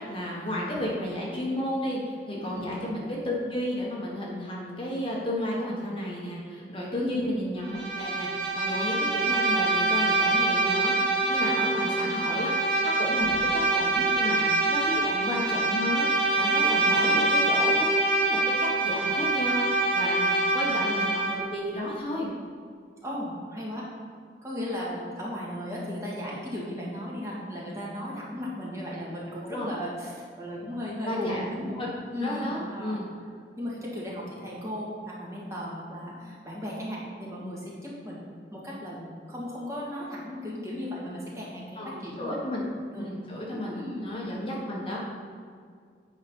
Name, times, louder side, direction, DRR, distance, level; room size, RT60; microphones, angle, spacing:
voice 1, 0.0-13.3 13.7-17.9 18.2-19.6 19.9-22.3 29.5-29.7 31.0-31.9 32.2-33.0 41.8-42.6 42.9-45.0, left 1 dB, 30° left, -4 dB, 1.3 m, -33 dB
Bowed string instrument, 7.6-21.5, right 2 dB, 60° right, 1.6 m, -25 dB
voice 2, 16.8-17.4 20.7-20.8 23.0-23.9 24.4-31.8 32.1-33.0 33.6-38.2 38.5-42.4 42.9-43.1 43.5-44.3, equal, 15° right, -6 dB, 1.9 m, -36 dB
8.8 x 5.0 x 5.4 m, 2.1 s
head